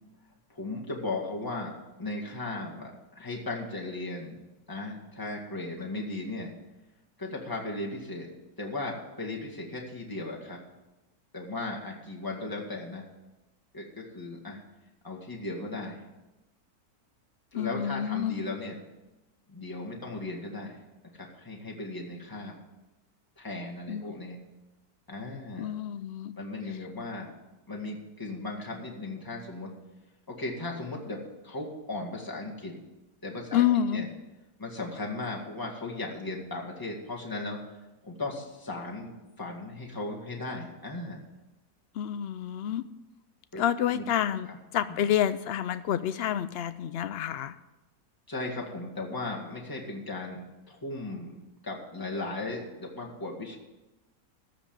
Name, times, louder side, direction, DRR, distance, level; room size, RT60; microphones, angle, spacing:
voice 1, 0.5-4.4 4.7-6.5 7.2-8.3 8.6-10.6 11.3-13.0 13.7-14.6 15.0-16.0 17.5-18.8 19.5-20.8 21.1-22.6 23.4-24.4 25.1-25.7 26.4-27.3 27.7-29.7 30.3-32.8 33.2-33.6 33.9-34.1 34.6-37.6 38.0-41.2 43.5-44.0 44.9-45.0 48.3-51.4 51.6-53.6, left 2 dB, 15° left, -2 dB, 2.0 m, -36 dB
voice 2, 17.5-18.4 23.9-24.2 25.6-26.3 33.5-34.0 41.9-42.8 43.6-47.6, left 10 dB, 85° left, 13 dB, 0.5 m, -28 dB
14.0 x 5.2 x 8.9 m, 1.0 s
omnidirectional pair, 1.6 m